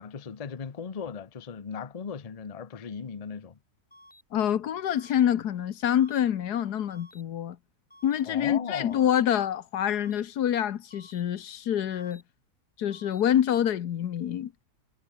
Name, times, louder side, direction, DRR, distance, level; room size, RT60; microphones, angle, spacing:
voice 1, 0.0-3.6 8.2-9.0, left 6 dB, 30° left, 0.8 m, -37 dB
sound 1, 3.9-4.2 4.9-5.2 5.9-6.2 6.9-7.2 7.9-8.2 8.9-9.2 9.9-10.2 10.9-11.2 11.9-12.2 12.9-13.2, left 1 dB, 5° left, 2.3 m, -54 dB
voice 2, 4.3-7.6 8.0-12.2 12.8-14.5, left 10 dB, 80° left, 1.5 m, -26 dB
omnidirectional pair, 1.7 m